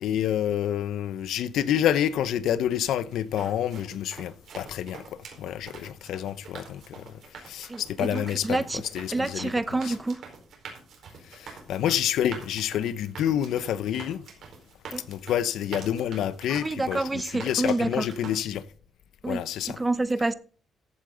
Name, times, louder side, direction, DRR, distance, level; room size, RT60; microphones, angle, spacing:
voice 1, 0.0-5.0 5.4-7.0 7.5-8.6 8.9-9.5 9.9-10.0 11.7-14.2 15.1-18.6 19.3-19.8, left 10 dB, 80° left, 0.7 m, -28 dB
sound 1, 3.1-18.4, right 5 dB, 65° right, 4.4 m, -45 dB
voice 2, 7.7-8.8 9.1-10.2 14.9-15.0 16.5-18.1 19.2-20.3, right 2 dB, 15° right, 0.7 m, -28 dB
14.5 x 8.6 x 3.9 m
cardioid pair, 125°, 0 cm